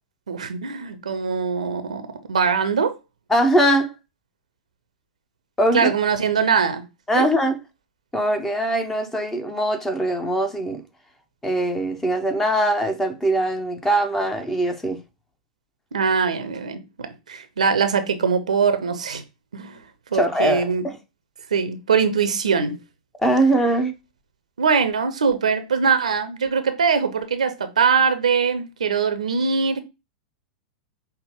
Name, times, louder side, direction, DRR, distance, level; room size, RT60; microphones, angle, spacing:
voice 1, 0.3-3.0 5.7-6.8 7.1-7.3 15.9-19.2 19.5-19.8 20.1-20.8 21.5-22.8 24.6-29.8, right 5 dB, 75° right, 0.7 m, -22 dB
voice 2, 3.3-3.9 5.6-5.9 7.1-7.6 8.1-10.8 11.4-15.0 20.1-21.0 23.2-23.9, right 1 dB, 10° left, 0.7 m, -21 dB
5.5 x 2.1 x 3.5 m
figure-of-eight pair, 95°, 4 cm